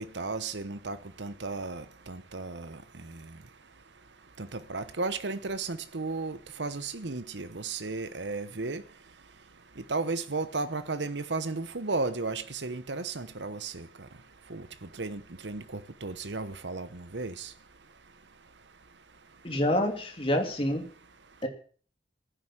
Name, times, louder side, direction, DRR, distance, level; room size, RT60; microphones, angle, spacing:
voice 1, 0.0-2.8 4.4-8.8 9.9-13.9 14.5-14.7 15.0-17.5, right 3 dB, 80° right, 1.1 m, -34 dB
voice 2, 19.4-20.8 21.4-21.5, left 1 dB, 30° left, 3.0 m, -27 dB
15.5 x 10.0 x 7.5 m
head